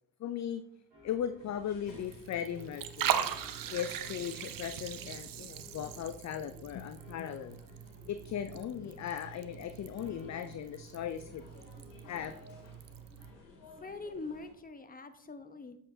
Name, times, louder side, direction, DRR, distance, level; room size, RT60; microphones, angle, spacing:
voice 1, 0.2-0.6 1.0-3.3 3.7-7.6 8.1-11.4 12.1-12.4, left 9 dB, 35° left, 10 dB, 0.5 m, -38 dB
sound 1, 0.9-12.3, left 2 dB, 90° right, 2.8 m, -58 dB
sound 2, 1.4-14.5, left 2 dB, 90° left, 1.9 m, -56 dB
Liquid, 1.9-13.3, right 9 dB, 45° right, 0.7 m, -40 dB
voice 2, 13.7-15.8, left 3 dB, 20° left, 9 dB, 0.9 m, -43 dB
7.5 x 6.5 x 2.7 m, 0.71 s
hypercardioid pair, 55°, 48 cm